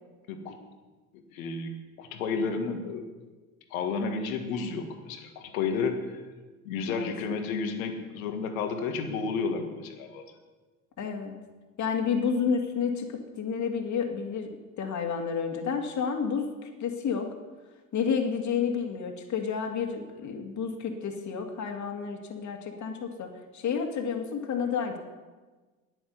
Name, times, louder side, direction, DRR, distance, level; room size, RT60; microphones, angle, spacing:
voice 1, 1.3-3.0 3.7-6.2 6.7-10.3, left 5 dB, 75° left, 6 dB, 1.8 m, -32 dB
voice 2, 11.0-11.3 11.8-13.1 13.4-14.5 14.8-17.3 17.9-25.0, left 6 dB, 45° left, 3 dB, 2.1 m, -30 dB
10.0 x 9.7 x 8.1 m, 1.3 s
hypercardioid pair, 65°, 41 cm